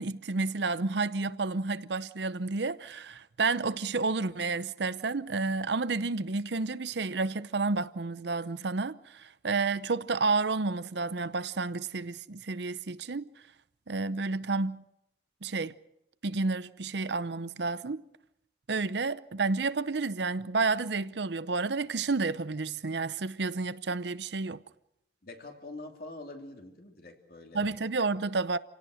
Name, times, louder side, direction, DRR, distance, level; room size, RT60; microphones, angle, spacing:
voice 1, 0.0-13.3 13.9-14.8 15.4-15.7 16.2-18.0 18.7-24.6 27.5-28.6, right 3 dB, 70° right, 0.8 m, -30 dB
voice 2, 25.2-27.7, left 2 dB, 55° left, 2.8 m, -45 dB
28.0 x 17.5 x 6.4 m
head